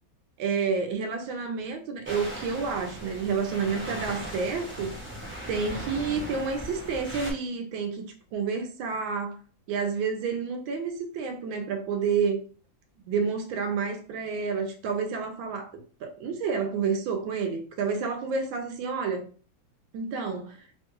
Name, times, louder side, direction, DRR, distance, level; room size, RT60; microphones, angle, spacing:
voice 1, 0.4-4.9 5.5-8.1 8.3-9.4 9.7-12.4 13.0-15.7 16.0-19.3 19.9-20.6, right 5 dB, 80° right, 1.4 m, -29 dB
sound 1, 2.0-7.3, equal, 15° right, 0.4 m, -38 dB
3.5 x 2.3 x 2.9 m
omnidirectional pair, 2.1 m